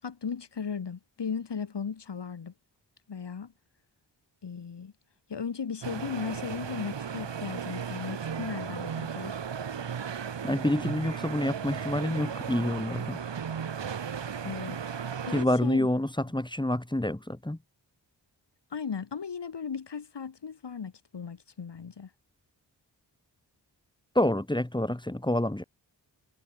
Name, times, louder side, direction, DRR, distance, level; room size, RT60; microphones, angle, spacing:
voice 1, 0.0-2.5 3.1-3.5 4.4-4.9 5.3-9.4 14.4-14.8 15.2-15.9 18.7-22.1, left 6 dB, 65° left, 6.7 m, -36 dB
sound 1, 5.8-15.5, right 7 dB, 70° right, 4.3 m, -35 dB
voice 2, 10.4-13.2 15.3-17.6 24.2-25.6, left 1 dB, 10° left, 3.7 m, -28 dB
cardioid pair, 70°, 44 cm